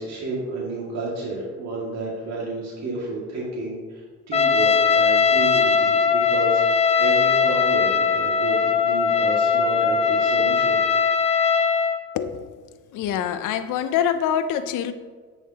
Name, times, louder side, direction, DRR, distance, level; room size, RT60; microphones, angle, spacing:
voice 1, 0.0-4.0 4.3-10.8, right 2 dB, 60° right, 2.1 m, -31 dB
Trumpet, 4.3-12.0, left 5 dB, 20° left, 0.7 m, -20 dB
voice 2, 12.1-12.5 12.9-14.9, left 9 dB, 90° left, 0.6 m, -25 dB
10.5 x 6.5 x 2.9 m
cardioid pair, 90°, 30 cm